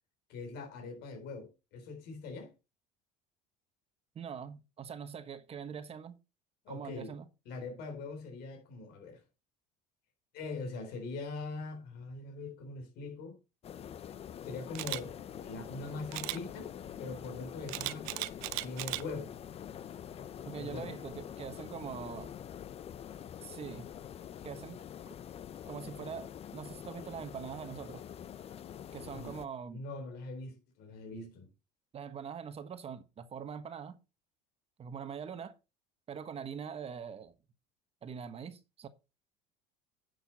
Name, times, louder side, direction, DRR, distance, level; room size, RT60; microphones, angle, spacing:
voice 1, 0.3-2.5 6.6-7.1 7.5-9.2 10.3-13.4 14.4-16.7 17.0-18.3 18.6-19.3 20.6-20.9 29.1-29.4 29.7-31.5, left 3 dB, 65° left, 3.8 m, -42 dB
voice 2, 4.1-6.1 6.7-7.3 20.4-22.3 23.4-23.9 24.4-24.8 25.6-28.0 28.9-29.8 31.9-34.0 34.8-35.5 36.1-37.3 38.0-38.9, right 7 dB, 35° right, 1.3 m, -43 dB
sound 1, 13.6-29.5, left 9 dB, 35° left, 0.6 m, -46 dB
Camera, 14.7-15.0 16.1-16.4 17.7-19.0 19.5-19.8, right 20 dB, 85° right, 0.7 m, -36 dB
10.0 x 6.8 x 4.2 m
supercardioid pair, 115°, 18 cm